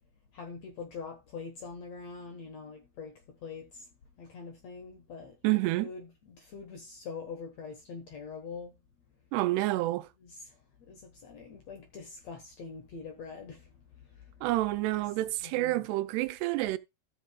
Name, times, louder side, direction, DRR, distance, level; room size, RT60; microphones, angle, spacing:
voice 1, 0.3-3.1 3.4-3.7 4.2-5.3 5.8-8.7 10.2-10.3 10.9-13.6 15.4-15.8, left 5 dB, 60° left, 1.9 m, -43 dB
voice 2, 5.4-5.9 9.3-10.1 14.4-16.8, right 18 dB, 85° right, 2.7 m, -28 dB
14.5 x 6.4 x 2.3 m
omnidirectional pair, 4.7 m